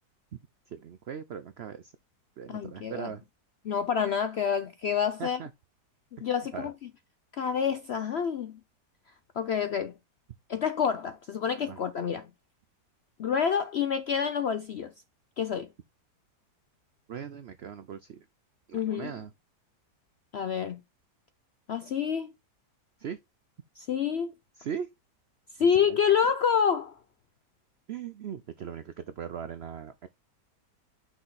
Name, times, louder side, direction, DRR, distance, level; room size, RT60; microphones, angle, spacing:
voice 1, 0.7-1.9 2.4-3.2 5.2-5.5 6.5-6.7 11.6-11.8 17.1-18.3 18.7-19.3 23.0-23.2 24.6-24.9 25.6-26.0 27.9-30.1, right 8 dB, 85° right, 0.5 m, -39 dB
voice 2, 2.5-3.1 3.6-5.4 6.2-6.7 7.4-8.6 9.4-9.9 10.5-12.3 13.2-14.9 15.4-15.7 18.7-19.1 20.3-20.8 21.7-22.3 23.8-24.3 25.6-27.0, left 7 dB, 70° left, 0.6 m, -28 dB
6.1 x 4.8 x 4.0 m
omnidirectional pair, 1.8 m